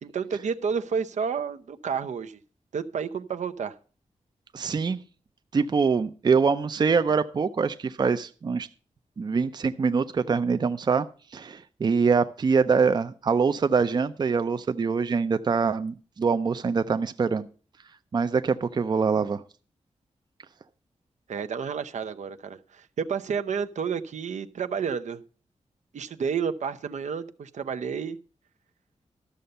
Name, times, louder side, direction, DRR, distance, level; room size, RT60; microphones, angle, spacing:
voice 1, 0.0-2.4 2.7-3.8 21.3-25.2 25.9-28.2, right 6 dB, 80° right, 0.7 m, -30 dB
voice 2, 4.5-5.0 5.5-8.7 9.2-11.1 11.3-17.5 18.1-19.4, right 5 dB, 35° right, 0.5 m, -24 dB
13.0 x 6.8 x 5.3 m
wide cardioid pair, 165°, 12 cm